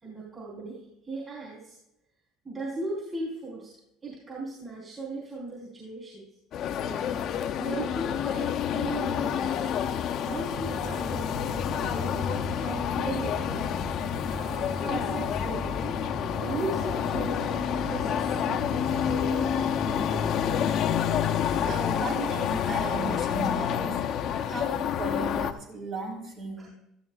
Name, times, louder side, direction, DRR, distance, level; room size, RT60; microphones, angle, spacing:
voice 1, 0.0-1.8 2.4-3.7 4.0-6.3 6.8-7.1 7.6-9.7 10.2-12.3 12.6-13.7 14.3-15.9 16.3-20.3 26.6-26.7, right 2 dB, 30° right, -4 dB, 4.2 m, -37 dB
sound 1, 6.5-25.5, left 9 dB, 55° left, 0.7 m, -28 dB
sound 2, 10.5-21.2, right 3 dB, 10° right, 0.5 m, -40 dB
voice 2, 21.7-24.0 24.5-26.7, right 3 dB, 60° right, -3 dB, 4.3 m, -35 dB
13.5 x 13.0 x 2.4 m, 0.84 s
hypercardioid pair, 80°, 0 cm